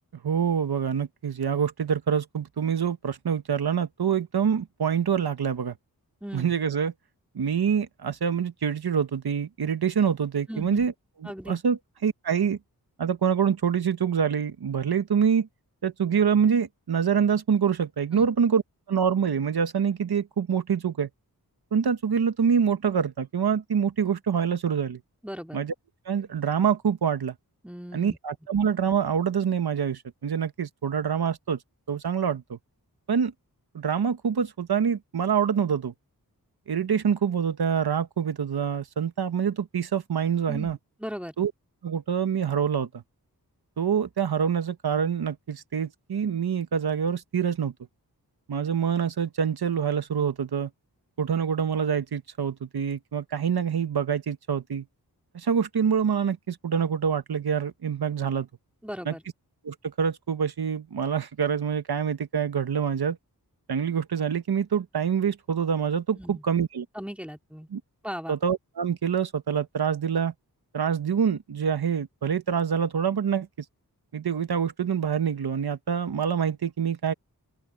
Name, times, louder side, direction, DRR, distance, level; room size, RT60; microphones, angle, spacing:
voice 1, 0.2-5.7 6.3-6.9 7.3-10.9 11.5-12.6 13.0-15.5 15.8-18.6 18.9-21.1 21.7-25.0 25.5-25.7 26.1-27.3 27.9-31.6 31.9-32.6 33.1-33.3 33.7-35.9 36.7-40.8 41.4-41.5 41.8-43.0 43.8-47.7 48.5-50.7 51.2-54.8 55.3-58.5 59.0-59.1 59.6-63.2 63.7-66.9 67.7-67.8 68.3-70.3 70.7-73.5 74.1-77.1, right 7 dB, 85° right, 1.2 m, -26 dB
voice 2, 6.2-6.5 10.5-10.9 11.2-11.6 18.1-18.3 25.2-25.6 27.6-28.2 40.5-41.3 58.8-59.2 66.2-66.4 66.9-67.7 68.0-68.4, equal, 5° right, 2.6 m, -37 dB
open air
wide cardioid pair, 100°, 37 cm